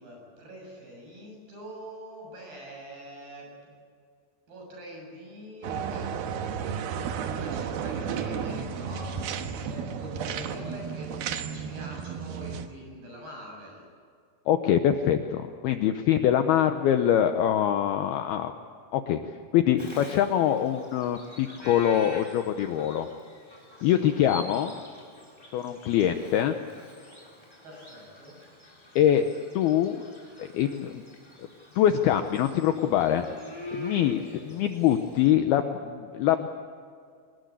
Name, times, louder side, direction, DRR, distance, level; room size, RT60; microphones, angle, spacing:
voice 1, 0.0-3.8 4.5-13.9 23.8-24.1 27.6-28.4 34.0-34.6, equal, 55° right, 0 dB, 9.0 m, -44 dB
sound 1, 5.6-12.7, right 7 dB, 70° right, 2.5 m, -33 dB
voice 2, 14.5-18.5 18.9-19.2 19.5-23.1 23.8-24.7 25.5-26.6 29.0-29.3 29.6-30.1 30.4-31.0 31.4-31.5 31.8-33.2 33.7-34.2 34.5-36.5, left 10 dB, 75° left, 7 dB, 2.3 m, -24 dB
Bird vocalization bird call bird song, 19.8-35.3, left 1 dB, 5° left, 3.9 m, -46 dB
25.0 x 21.0 x 8.2 m, 2.2 s
omnidirectional pair, 5.4 m